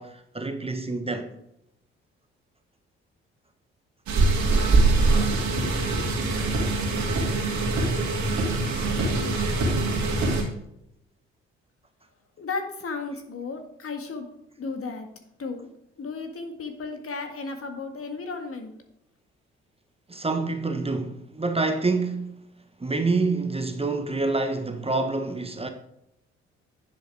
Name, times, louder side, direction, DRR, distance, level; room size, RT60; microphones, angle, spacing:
voice 1, 0.0-1.3 20.1-22.4 22.8-25.7, right 3 dB, 20° right, 1.3 m, -27 dB
sound 1, 4.1-10.4, right 3 dB, 65° right, 2.5 m, -23 dB
voice 2, 12.4-14.3 14.6-15.1 15.4-15.7 16.0-18.7, left 4 dB, 45° left, 1.8 m, -34 dB
10.0 x 7.7 x 3.5 m
hypercardioid pair, 45°, 31 cm